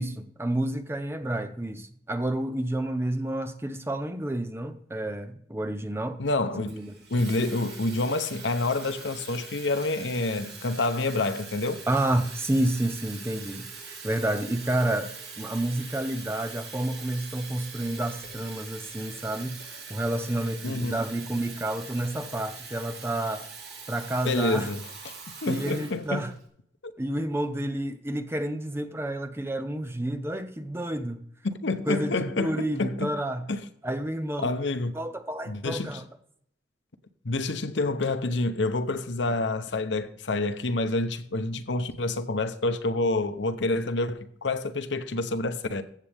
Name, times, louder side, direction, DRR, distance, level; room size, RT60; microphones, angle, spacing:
voice 1, 0.0-6.2 6.5-6.9 11.9-19.6 19.9-23.5 23.9-24.7 25.4-26.3 27.0-31.2 31.9-33.5 33.8-34.6 34.9-36.0 39.2-39.4, right 1 dB, 15° right, 0.6 m, -30 dB
voice 2, 6.2-6.8 7.1-11.8 20.6-20.9 24.3-24.8 25.4-26.2 26.8-26.9 31.6-33.1 33.5-33.6 34.4-35.0 35.5-36.0 37.2-45.8, left 2 dB, 80° left, 0.9 m, -28 dB
Water tap faucet / Fill (with liquid), 6.7-26.4, right 5 dB, 60° right, 2.7 m, -43 dB
15.0 x 7.5 x 3.5 m
head